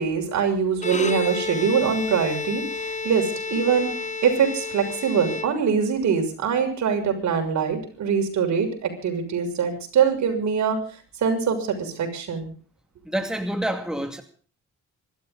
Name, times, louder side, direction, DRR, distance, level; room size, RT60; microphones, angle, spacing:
voice 1, 0.0-10.8 11.2-12.5, right 6 dB, 65° right, 6.5 m, -23 dB
Bowed string instrument, 0.7-6.0, left 4 dB, 25° left, 1.1 m, -31 dB
voice 2, 13.0-14.2, right 1 dB, ahead, 2.4 m, -27 dB
26.0 x 13.0 x 3.9 m
cardioid pair, 90°, 30 cm